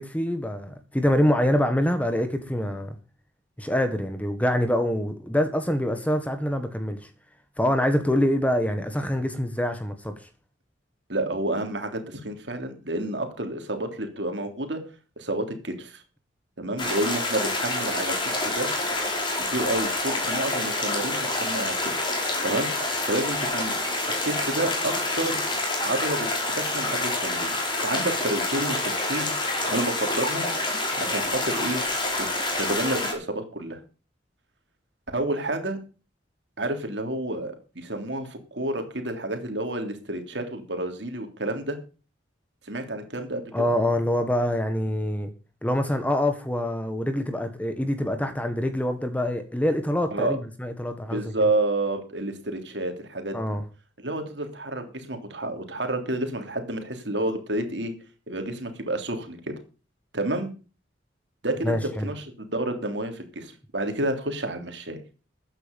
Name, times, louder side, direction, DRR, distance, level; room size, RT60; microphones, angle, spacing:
voice 1, 0.0-3.0 3.6-7.0 7.6-10.1 43.5-45.3 45.6-51.3 53.3-53.6 61.6-62.1, left 1 dB, 10° left, 1.5 m, -25 dB
voice 2, 11.1-14.8 15.2-16.0 16.6-18.1 18.4-18.7 19.5-21.9 22.4-23.7 24.2-25.4 25.8-27.6 27.8-29.3 29.7-30.5 31.0-31.8 32.2-32.3 32.6-33.8 35.1-35.8 36.6-41.8 42.7-43.6 50.1-50.4 51.1-53.4 54.0-57.9 58.3-59.4 60.1-60.5 61.4-65.0, right 1 dB, 65° right, 3.2 m, -29 dB
sound 1, 16.8-33.1, left 2 dB, 25° left, 5.0 m, -27 dB
14.5 x 9.4 x 5.4 m
head